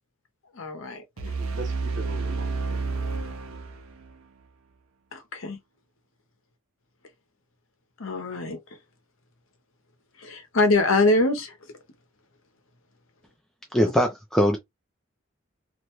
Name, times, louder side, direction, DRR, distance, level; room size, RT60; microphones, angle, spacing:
voice 1, 0.5-1.0 5.1-5.6 8.0-8.6 10.2-11.5, left 2 dB, 70° left, 0.8 m, -24 dB
voice 2, 1.2-3.1 3.5-3.6, right 2 dB, 60° right, 0.9 m, -41 dB
sound 1, 1.2-4.2, right 4 dB, 90° right, 0.6 m, -30 dB
voice 3, 13.7-14.6, equal, ahead, 0.4 m, -21 dB
2.5 x 2.1 x 3.0 m
head